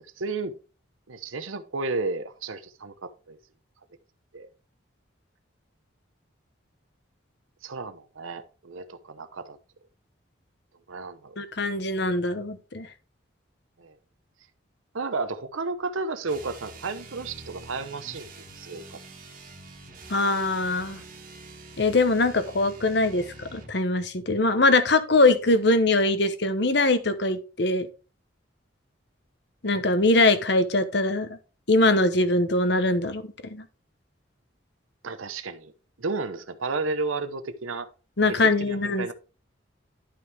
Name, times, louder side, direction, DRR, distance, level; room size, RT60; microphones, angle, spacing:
voice 1, 0.2-0.5 1.1-3.4 4.3-4.5 7.6-9.6 10.9-11.4 13.8-14.0 14.9-18.3 18.5-19.0 35.0-35.7 36.0-37.9 38.3-39.1, right 3 dB, 85° right, 0.9 m, -32 dB
voice 2, 11.4-12.9 20.1-21.0 21.8-27.9 29.6-31.4 31.7-33.2 33.5-33.6 38.2-39.1, left 2 dB, 55° left, 1.0 m, -22 dB
sound 1, 16.2-23.8, right 3 dB, 40° right, 1.8 m, -46 dB
11.5 x 5.7 x 3.5 m
head